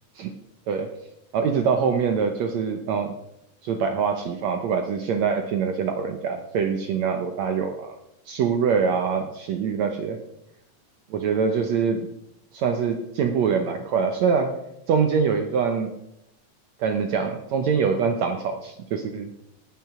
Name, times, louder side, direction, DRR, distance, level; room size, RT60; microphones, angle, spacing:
voice 1, 1.3-3.1 3.6-7.9 8.3-10.2 11.1-12.1 12.5-14.6 14.9-16.0 16.8-19.3, right 6 dB, 65° right, 5 dB, 2.0 m, -24 dB
18.0 x 9.0 x 4.9 m, 0.81 s
omnidirectional pair, 3.8 m